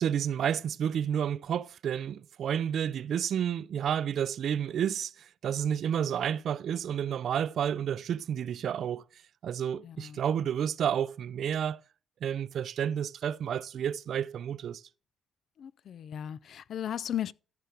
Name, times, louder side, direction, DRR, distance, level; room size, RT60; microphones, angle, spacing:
voice 1, 0.0-9.0 9.4-11.8 12.2-14.8, right 9 dB, 65° right, 0.4 m, -30 dB
voice 2, 9.8-10.2 15.6-17.3, left 10 dB, 65° left, 0.4 m, -36 dB
13.5 x 5.7 x 3.4 m
cardioid pair, 90°, 0 cm